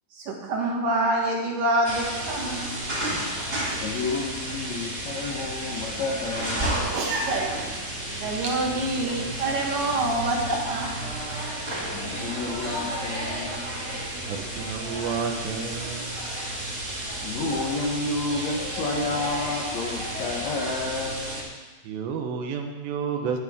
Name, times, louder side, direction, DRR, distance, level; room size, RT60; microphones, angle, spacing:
voice 1, 0.1-2.7 6.9-7.7 8.2-10.9 12.0-12.1, right 2 dB, 55° right, -2 dB, 3.3 m, -26 dB
sound 1, 1.8-21.4, right 1 dB, 20° right, 2.4 m, -32 dB
voice 2, 3.7-6.8 11.9-13.9 17.2-21.4, left 3 dB, 70° left, -2 dB, 1.7 m, -30 dB
voice 3, 14.2-16.2 21.8-23.4, right 6 dB, 90° right, 4 dB, 3.4 m, -31 dB
15.0 x 12.0 x 3.7 m, 1.3 s
omnidirectional pair, 4.9 m